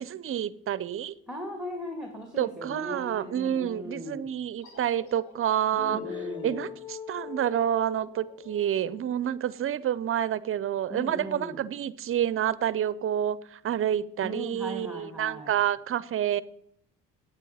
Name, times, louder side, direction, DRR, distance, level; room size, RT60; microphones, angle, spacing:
voice 1, 0.0-1.2 2.4-6.0 6.4-16.4, right 10 dB, 45° right, 18 dB, 0.6 m, -28 dB
voice 2, 1.3-4.3 5.7-6.7 10.9-11.7 14.2-15.6, equal, 5° right, 2 dB, 1.9 m, -38 dB
sound 1, 4.6-9.9, left 3 dB, 65° left, 4.2 m, -53 dB
sound 2, 5.8-9.5, left 8 dB, 15° left, 0.7 m, -41 dB
9.0 x 8.2 x 5.6 m, 0.68 s
cardioid pair, 90°, 30 cm